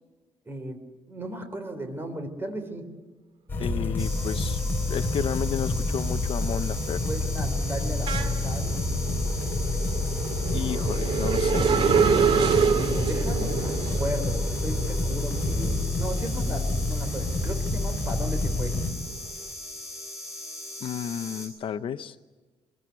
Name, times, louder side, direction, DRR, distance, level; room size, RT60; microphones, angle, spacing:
voice 1, 0.5-0.8 1.1-2.9 7.0-8.8 10.4-10.9 12.1-18.8, right 1 dB, 20° right, 7 dB, 3.7 m, -36 dB
sound 1, 3.5-18.9, left 2 dB, 20° left, 3.2 m, -28 dB
voice 2, 3.6-7.0 10.5-11.7 20.8-22.2, left 8 dB, 55° left, 10 dB, 0.7 m, -32 dB
sound 2, 4.0-21.5, left 2 dB, 5° right, 7.6 m, -39 dB
sound 3, 5.1-5.6 5.9-17.2 17.6-19.3, right 7 dB, 60° right, 2.4 m, -28 dB
24.0 x 22.0 x 8.2 m, 1.3 s
cardioid pair, 160°, 11 cm